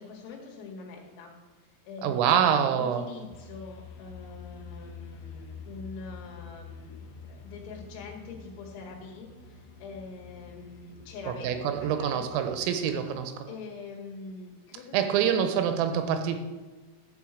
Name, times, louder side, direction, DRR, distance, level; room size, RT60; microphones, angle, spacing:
voice 1, 0.0-1.3 1.8-12.4 13.5-16.0, left 4 dB, 90° left, -1 dB, 4.7 m, -44 dB
voice 2, 2.0-3.2 11.3-13.5 14.9-16.4, right 8 dB, 85° right, 7 dB, 3.6 m, -26 dB
sound 1, 3.3-13.2, left 5 dB, 75° left, 2.9 m, -47 dB
13.5 x 5.6 x 7.4 m, 1.3 s
omnidirectional pair, 5.9 m